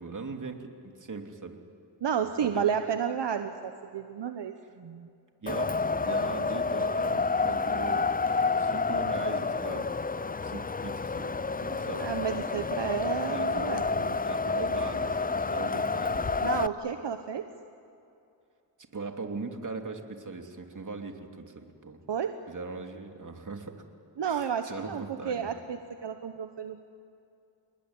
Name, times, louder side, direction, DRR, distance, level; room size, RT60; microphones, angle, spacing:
voice 1, 0.0-1.6 2.2-2.7 5.4-8.2 8.6-9.9 10.4-12.3 12.5-12.9 13.3-13.9 14.2-16.5 16.9-17.0 18.9-22.0 22.5-23.8 24.3-25.6, right 3 dB, 45° right, 4 dB, 3.0 m, -40 dB
voice 2, 2.0-5.1 12.0-14.2 16.4-17.4 22.1-22.3 24.2-26.8, right 8 dB, 70° right, 7 dB, 1.2 m, -32 dB
Wind, 5.5-16.7, left 4 dB, 20° left, 0.5 m, -29 dB
28.5 x 21.0 x 9.7 m, 2.5 s
cardioid pair, 70°, 43 cm